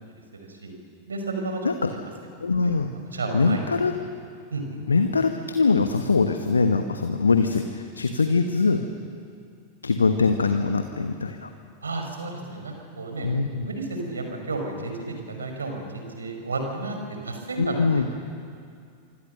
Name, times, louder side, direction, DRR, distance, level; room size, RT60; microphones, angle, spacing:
voice 1, 0.3-0.7 1.1-1.6 2.6-2.7 3.1-3.8 4.5-4.6 11.8-13.3 13.7-17.0 17.2-18.1, right 3 dB, 75° right, 4 dB, 5.4 m, -32 dB
voice 2, 2.4-2.9 3.3-3.9 4.9-8.8 9.8-11.5 13.2-13.7 17.6-18.1, left 4 dB, 75° left, 7 dB, 1.3 m, -22 dB
26.0 x 25.5 x 6.6 m, 2.3 s
figure-of-eight pair, 90°, 0 cm